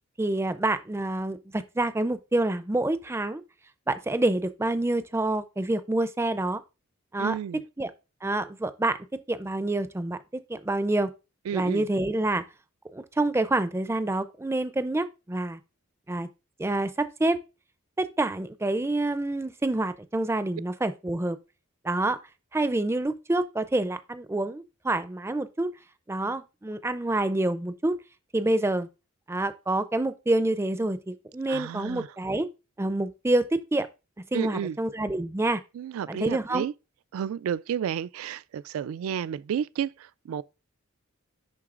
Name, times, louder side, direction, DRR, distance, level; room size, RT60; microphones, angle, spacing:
voice 1, 0.2-3.4 3.9-6.6 7.1-7.4 7.8-7.9 8.2-9.0 9.3-11.1 11.5-12.4 12.9-15.6 16.1-16.3 16.6-17.4 18.0-21.4 21.8-22.2 22.5-25.7 26.1-28.0 28.3-28.9 29.3-32.5 32.8-33.9 34.3-35.6 36.1-36.7, right 2 dB, 10° right, 0.4 m, -27 dB
voice 2, 7.2-7.6 11.5-11.8 31.5-32.1 34.3-34.8 35.7-36.7 37.1-40.4, right 8 dB, 80° right, 0.3 m, -31 dB
10.5 x 3.8 x 2.4 m
head